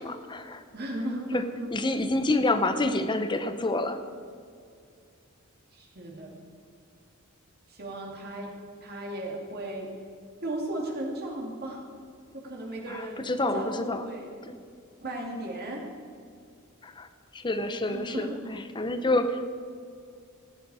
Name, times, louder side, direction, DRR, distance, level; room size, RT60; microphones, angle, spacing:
voice 1, 0.0-0.6 1.3-1.4 1.7-4.0 12.9-14.1 16.8-17.1 17.3-19.5, left 2 dB, 20° left, 9 dB, 0.7 m, -28 dB
voice 2, 0.7-1.7 5.7-6.4 7.7-8.5 8.8-9.9 10.4-11.8 12.3-13.2 13.5-14.3 15.0-15.8 17.9-18.6, right 1 dB, 50° right, -1 dB, 2.3 m, -35 dB
15.0 x 10.0 x 4.8 m, 2.3 s
head